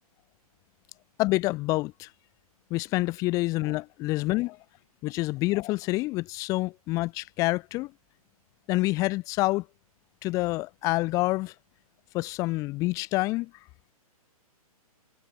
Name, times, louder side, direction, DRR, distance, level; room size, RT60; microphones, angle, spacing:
voice 1, 1.2-2.1 2.7-4.6 5.0-7.9 8.7-9.6 10.2-11.5 12.1-13.5, left 20 dB, 15° left, 2.8 m, -27 dB
hypercardioid pair, 170°, 19 cm